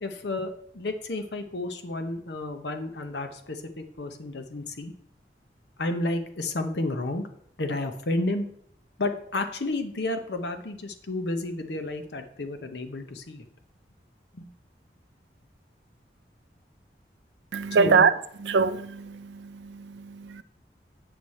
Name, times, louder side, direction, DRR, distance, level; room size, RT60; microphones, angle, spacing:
voice 1, 0.0-4.9 5.8-7.3 7.6-8.5 9.0-13.4 14.3-14.5 17.8-18.0, left 2 dB, 80° left, 0.8 m, -31 dB
voice 2, 17.5-18.1 18.4-20.4, right 5 dB, 85° right, 0.5 m, -24 dB
8.1 x 6.3 x 4.2 m
head